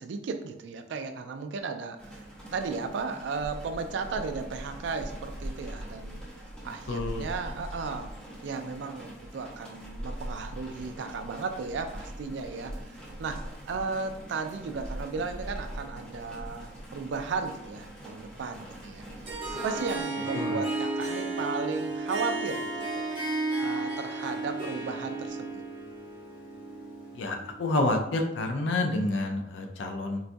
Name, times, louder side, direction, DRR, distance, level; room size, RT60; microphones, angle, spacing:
voice 1, 0.0-8.1 8.4-13.4 13.7-19.1 19.5-23.3 23.6-25.6, right 4 dB, 65° right, 7 dB, 0.3 m, -35 dB
sound 1, 2.0-20.0, equal, 5° left, 0.7 m, -42 dB
voice 2, 6.9-7.3 20.3-20.6 27.1-30.2, left 2 dB, 70° left, 3 dB, 0.5 m, -29 dB
Harp, 19.2-27.7, right 2 dB, 25° right, 0.7 m, -33 dB
3.9 x 2.2 x 2.6 m, 0.82 s
head